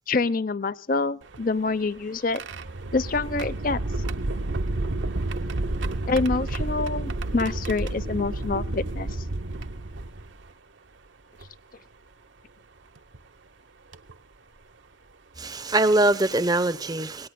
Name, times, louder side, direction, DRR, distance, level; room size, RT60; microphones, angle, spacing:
voice 1, 0.1-2.4 2.9-3.8 6.1-9.1, left 3 dB, 45° left, 0.7 m, -26 dB
sound 1, 1.2-10.5 11.4-11.5 13.0-13.2 13.9-14.1 15.7-15.8 16.3-16.5, right 2 dB, 70° right, 0.9 m, -31 dB
voice 2, 15.4-17.3, right 2 dB, 20° right, 0.8 m, -22 dB
26.5 x 18.5 x 2.2 m
head